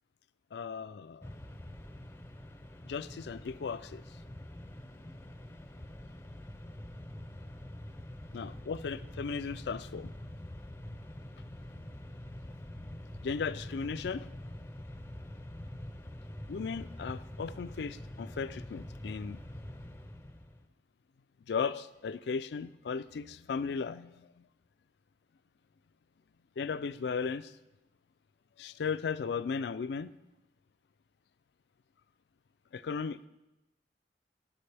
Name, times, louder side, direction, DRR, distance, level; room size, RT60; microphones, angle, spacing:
voice 1, 0.5-1.2 2.9-4.0 8.3-10.1 13.2-14.3 16.5-19.4 21.5-24.1 26.6-27.4 28.6-30.1 32.7-33.3, left 5 dB, 70° left, 15 dB, 0.4 m, -36 dB
Mechanisms, 1.2-20.7, left 1 dB, 15° left, 0.5 m, -45 dB
12.5 x 10.5 x 3.4 m, 0.99 s
head